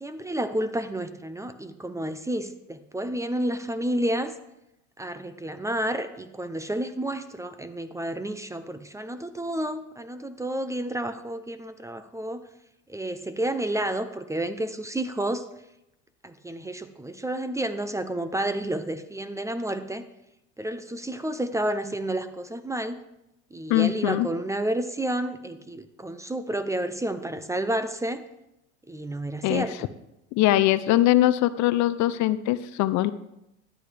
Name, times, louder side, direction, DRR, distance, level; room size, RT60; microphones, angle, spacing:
voice 1, 0.0-4.3 5.0-12.4 12.9-15.5 16.2-20.0 20.6-23.0 23.5-28.2 28.9-29.8, right 1 dB, 10° right, 11 dB, 0.6 m, -30 dB
voice 2, 23.7-24.3 29.4-29.7 30.3-33.1, left 14 dB, 55° left, 14 dB, 0.6 m, -22 dB
12.5 x 8.7 x 3.4 m, 0.86 s
supercardioid pair, 95°, 35 cm